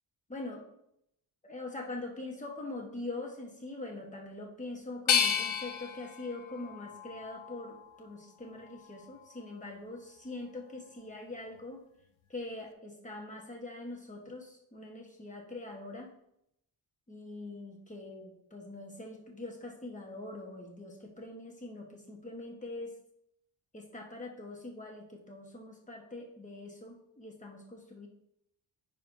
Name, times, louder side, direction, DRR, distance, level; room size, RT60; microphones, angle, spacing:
voice 1, 0.3-0.7 1.4-11.8 12.3-16.1 17.1-23.0 23.7-28.1, left 2 dB, 15° left, 1 dB, 1.1 m, -43 dB
sound 1, 5.1-8.0 8.5-9.4, left 8 dB, 75° left, 0.7 m, -33 dB
9.5 x 5.4 x 2.6 m, 0.77 s
wide cardioid pair, 155°, 48 cm